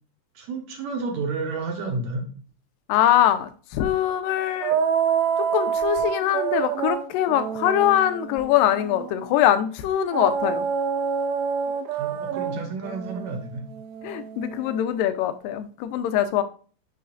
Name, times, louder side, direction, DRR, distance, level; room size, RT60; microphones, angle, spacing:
voice 1, 0.4-2.3 11.7-13.6, right 3 dB, 65° right, 2.1 m, -31 dB
voice 2, 2.9-4.8 5.5-10.7 14.0-16.4, left 11 dB, 90° left, 2.3 m, -22 dB
sound 1, 4.6-9.3 10.1-14.8, right 7 dB, 85° right, 1.5 m, -27 dB
6.7 x 6.3 x 2.5 m
omnidirectional pair, 3.9 m